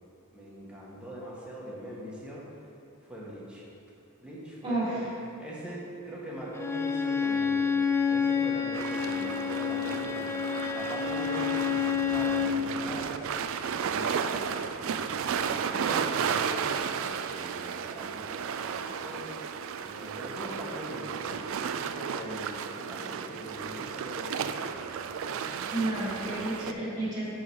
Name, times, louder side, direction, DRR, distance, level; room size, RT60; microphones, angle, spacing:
voice 1, 0.3-2.4 3.0-3.6 4.2-5.0 5.4-7.8 8.0-25.2 25.5-25.9 26.3-26.9, equal, 5° right, -6 dB, 1.4 m, -42 dB
voice 2, 4.6-5.0 25.7-27.3, right 2 dB, 20° right, -6 dB, 1.8 m, -31 dB
Bowed string instrument, 6.5-12.6, left 6 dB, 10° left, 0.3 m, -28 dB
sound 1, 8.7-26.7, right 7 dB, 65° right, 0.3 m, -33 dB
11.0 x 3.9 x 4.7 m, 2.8 s
head